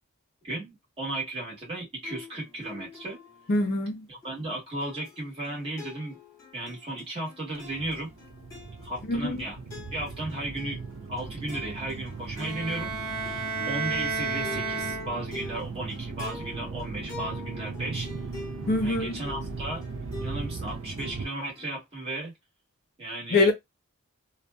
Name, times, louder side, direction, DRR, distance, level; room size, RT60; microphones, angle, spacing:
voice 1, 0.4-3.2 4.1-6.2 6.5-8.1 8.8-9.6 9.9-10.8 11.1-18.1 18.8-19.8 20.2-22.3 23.0-23.5, right 1 dB, 25° right, 1.2 m, -35 dB
sound 1, 2.0-21.7, left 3 dB, 15° left, 1.1 m, -46 dB
voice 2, 3.5-4.0 9.1-9.4 18.7-19.2 23.3-23.5, left 2 dB, 45° left, 0.5 m, -24 dB
sound 2, 7.5-21.3, right 4 dB, 60° right, 0.4 m, -38 dB
Bowed string instrument, 12.4-15.5, right 4 dB, 75° right, 0.9 m, -32 dB
2.6 x 2.2 x 2.2 m
head